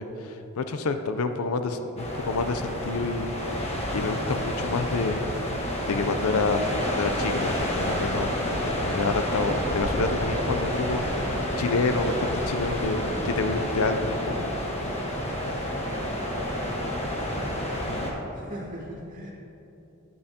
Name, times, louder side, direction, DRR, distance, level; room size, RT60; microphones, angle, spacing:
voice 1, 0.0-3.3 3.9-5.2 5.9-8.3 8.8-14.5, left 3 dB, 90° left, 8 dB, 0.5 m, -28 dB
sound 1, 2.0-18.1, equal, 30° left, 1.2 m, -29 dB
voice 2, 15.6-16.4 17.8-19.3, equal, 40° right, -6 dB, 2.2 m, -42 dB
12.0 x 8.6 x 2.8 m, 3.0 s
head